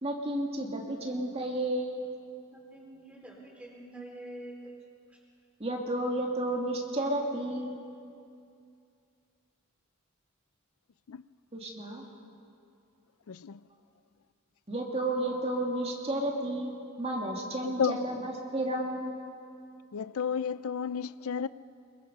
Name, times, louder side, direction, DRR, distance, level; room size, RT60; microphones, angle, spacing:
voice 1, 0.0-1.9 5.6-7.8 11.5-12.1 14.7-16.7 17.0-19.2, right 1 dB, 30° right, 2.1 m, -32 dB
voice 2, 2.5-4.7 5.1-5.2, right 1 dB, 5° right, 4.1 m, -46 dB
voice 3, 13.3-13.6 17.6-18.0 19.9-21.5, left 7 dB, 85° left, 0.5 m, -32 dB
24.0 x 22.5 x 5.4 m
head